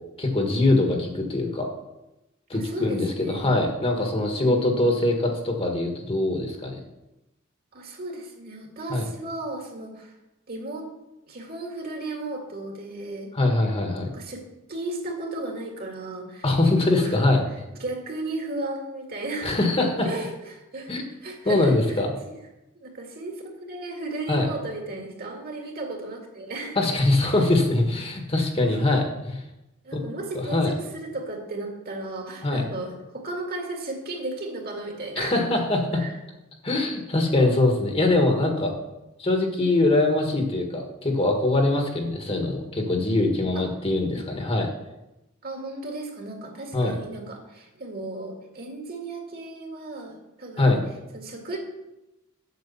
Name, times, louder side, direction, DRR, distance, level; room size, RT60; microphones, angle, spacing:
voice 1, 0.2-1.7 2.5-6.8 8.9-9.0 13.3-14.1 16.4-17.4 19.4-20.1 20.9-21.0 21.4-22.1 24.3-24.5 26.7-29.4 29.9-30.0 30.5-30.7 32.4-32.6 35.2-36.0 36.6-38.7 39.2-44.7 46.7-46.9 50.6-50.8, left 2 dB, 30° left, 3 dB, 1.4 m, -23 dB
voice 2, 2.5-3.5 4.5-4.8 7.7-10.1 10.5-10.9 11.3-13.3 14.1-16.4 16.9-17.2 17.8-19.5 20.0-20.9 21.2-22.0 22.7-26.8 27.2-27.3 28.7-28.8 29.8-35.4 35.9-36.1 43.5-43.7 44.1-44.2 45.4-50.8 51.1-51.6, right 2 dB, 45° right, 2 dB, 2.0 m, -35 dB
8.1 x 6.6 x 7.0 m, 0.96 s
head